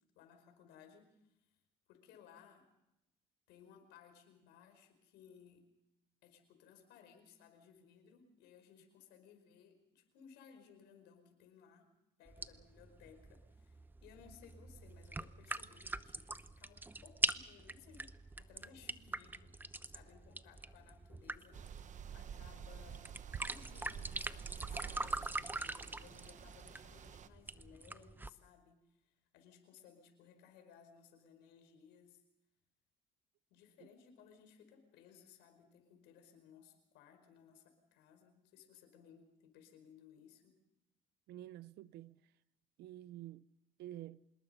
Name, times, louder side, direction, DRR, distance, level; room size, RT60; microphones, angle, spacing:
voice 1, 0.1-1.6 1.9-2.6 3.5-5.7 6.2-11.9 12.2-23.1 23.4-32.2 33.5-40.6, left 7 dB, 90° left, 5.0 m, -62 dB
sound 1, 12.3-28.3, right 2 dB, 10° right, 0.7 m, -43 dB
sound 2, 21.5-27.3, right 8 dB, 45° right, 1.1 m, -49 dB
voice 2, 41.3-42.2 42.8-43.5 43.8-44.2, right 13 dB, 80° right, 0.8 m, -49 dB
26.0 x 21.0 x 5.6 m
cardioid pair, 110°, 17 cm